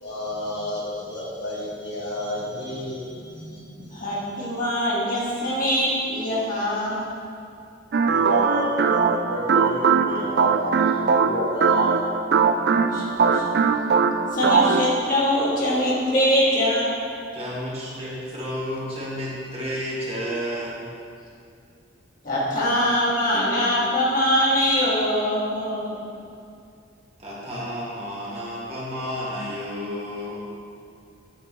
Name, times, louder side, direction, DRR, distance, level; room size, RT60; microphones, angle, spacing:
voice 1, 0.0-4.0 8.1-12.0, left 1 dB, 60° left, -6 dB, 1.8 m, -32 dB
voice 2, 3.8-7.0 12.8-13.6 14.3-16.9 22.2-26.0, equal, 45° left, -7 dB, 2.0 m, -23 dB
sound 1, 7.9-15.0, right 5 dB, 55° right, 0.4 m, -20 dB
voice 3, 17.3-20.9 27.2-30.4, equal, 30° right, -7 dB, 2.0 m, -31 dB
9.2 x 7.7 x 3.1 m, 2.4 s
head